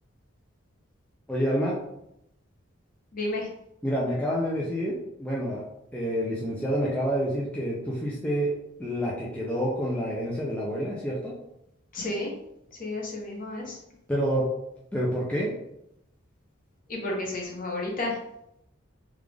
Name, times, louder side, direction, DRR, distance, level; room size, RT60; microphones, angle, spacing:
voice 1, 1.3-1.8 3.8-5.6 5.9-8.5 8.8-11.3 14.1-14.5 14.9-15.5, equal, 5° left, -5 dB, 0.5 m, -28 dB
voice 2, 3.1-3.5 11.9-12.3 12.8-13.8 16.9-18.2, left 2 dB, 40° left, -1 dB, 0.9 m, -31 dB
3.5 x 2.4 x 3.3 m, 0.82 s
head